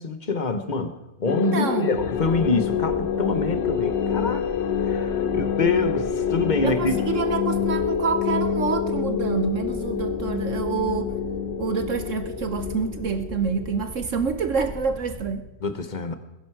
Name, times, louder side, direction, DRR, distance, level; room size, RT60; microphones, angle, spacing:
voice 1, 0.0-4.4 4.8-7.0 15.6-16.2, left 4 dB, 30° left, 9 dB, 1.0 m, -26 dB
sound 1, 1.3-14.0, left 7 dB, 80° left, 1.7 m, -27 dB
voice 2, 1.5-2.0 6.6-11.2 11.6-15.4, right 5 dB, 55° right, 10 dB, 0.9 m, -27 dB
sound 2, 1.9-15.4, equal, 15° right, 1.2 m, -40 dB
20.5 x 10.5 x 4.7 m, 1.0 s
omnidirectional pair, 2.0 m